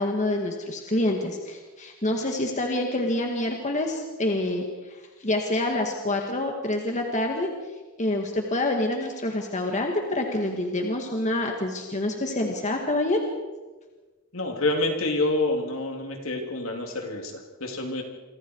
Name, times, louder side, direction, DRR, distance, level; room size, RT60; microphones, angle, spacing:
voice 1, 0.0-7.5 8.0-13.2, left 1 dB, 35° left, 2 dB, 2.1 m, -27 dB
voice 2, 14.3-18.0, left 2 dB, 70° left, 2 dB, 3.5 m, -27 dB
27.5 x 25.0 x 4.8 m, 1.3 s
head